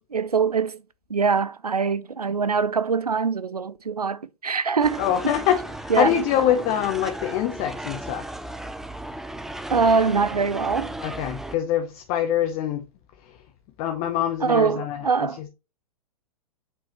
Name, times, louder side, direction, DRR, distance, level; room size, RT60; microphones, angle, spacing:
voice 1, 0.1-0.8 1.1-5.0 5.9-6.1 9.7-10.9 14.4-15.4, right 5 dB, 85° right, 0.5 m, -23 dB
sound 1, 4.8-11.6, right 1 dB, ahead, 0.5 m, -35 dB
voice 2, 5.0-8.2 11.0-12.8 13.8-15.1, left 10 dB, 35° left, 0.8 m, -24 dB
6.9 x 5.5 x 2.9 m
figure-of-eight pair, 100°, 19 cm